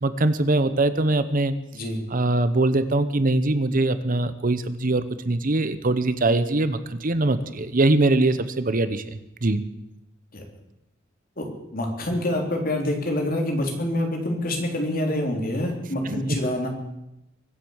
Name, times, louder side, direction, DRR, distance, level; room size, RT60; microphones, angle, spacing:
voice 1, 0.0-1.5 2.1-9.0 9.4-9.6 16.1-16.4, right 2 dB, 45° right, 12 dB, 0.9 m, -22 dB
voice 2, 11.4-16.7, left 1 dB, 50° left, 2 dB, 3.5 m, -26 dB
23.5 x 7.9 x 7.2 m, 0.87 s
head